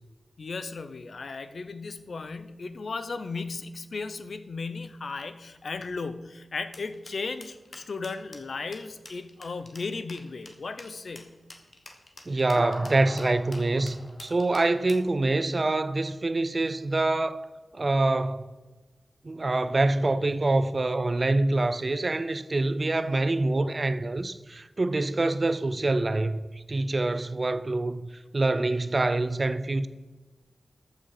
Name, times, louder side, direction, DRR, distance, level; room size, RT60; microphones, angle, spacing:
voice 1, 0.4-11.4, left 4 dB, 70° left, 0.7 m, -36 dB
sound 1, 6.7-15.1, left 2 dB, 55° left, 1.4 m, -48 dB
voice 2, 12.3-17.4 17.7-18.5 19.2-28.0 28.3-29.9, right 2 dB, 40° right, 0.5 m, -25 dB
sound 2, 12.6-15.3, equal, 5° left, 2.4 m, -40 dB
13.5 x 6.2 x 4.9 m
wide cardioid pair, 90°, 0 cm